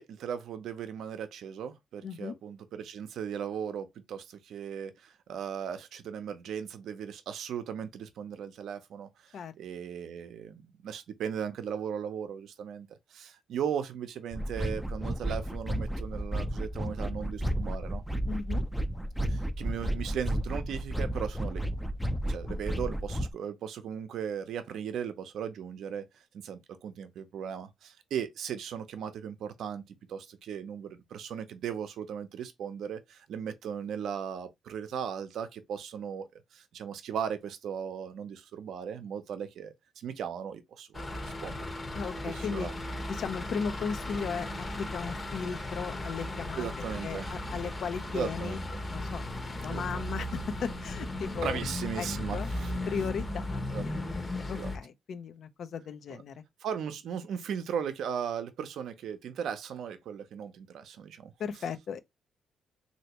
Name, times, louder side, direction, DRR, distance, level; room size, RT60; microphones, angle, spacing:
voice 1, 0.0-18.0 19.3-21.6 22.3-41.6 42.3-42.7 46.6-47.4 48.1-48.8 49.7-50.1 51.4-52.7 53.7-53.9 54.5-54.7 56.1-56.2 56.6-61.3, right 8 dB, 70° right, 0.6 m, -37 dB
voice 2, 2.0-2.4 9.3-9.5 18.3-18.6 22.5-22.6 41.9-42.7 43.1-46.7 47.0-48.6 48.9-49.2 49.6-51.6 52.0-52.5 52.9-53.6 53.9-56.4 61.4-62.0, left 6 dB, 65° left, 0.5 m, -36 dB
sound 1, 14.3-23.3, equal, ahead, 0.4 m, -32 dB
sound 2, 40.9-54.8, left 1 dB, 25° left, 0.8 m, -36 dB
3.3 x 2.7 x 2.9 m
cardioid pair, 90°, 0 cm